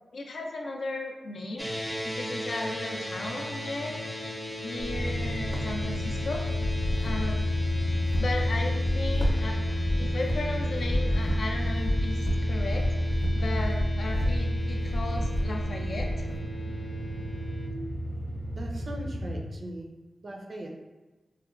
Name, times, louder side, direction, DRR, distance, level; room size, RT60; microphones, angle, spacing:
voice 1, 0.1-1.7 2.0-4.2 4.6-6.4 7.0-7.4 8.2-16.1, left 2 dB, 75° left, 1 dB, 0.4 m, -36 dB
sound 1, 1.6-17.7, left 1 dB, 10° left, 0.5 m, -38 dB
sound 2, 4.8-16.4, left 1 dB, 45° left, 0.7 m, -32 dB
sound 3, 4.9-19.4, equal, 85° right, 0.8 m, -30 dB
voice 2, 18.5-19.9 20.2-20.7, right 1 dB, 60° right, 1 dB, 0.4 m, -39 dB
2.9 x 2.1 x 2.4 m, 1.1 s
cardioid pair, 65°, 0 cm